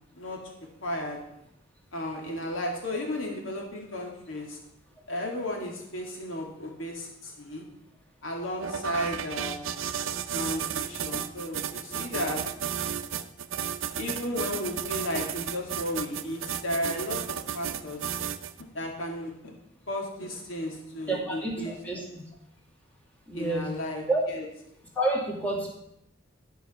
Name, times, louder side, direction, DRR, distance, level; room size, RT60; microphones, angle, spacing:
voice 1, 0.8-1.2 1.9-4.6 5.1-7.6 8.2-9.6 10.3-12.4 14.0-18.2 18.7-19.5 19.9-21.8 23.3-24.5, left 1 dB, 75° left, 1 dB, 2.2 m, -34 dB
sound 1, 8.6-18.6, right 9 dB, 75° right, 0.6 m, -33 dB
voice 2, 21.1-22.0 23.3-23.7 24.1-24.2 25.0-25.7, right 2 dB, 10° left, -3 dB, 2.3 m, -28 dB
12.0 x 5.4 x 6.0 m, 0.78 s
head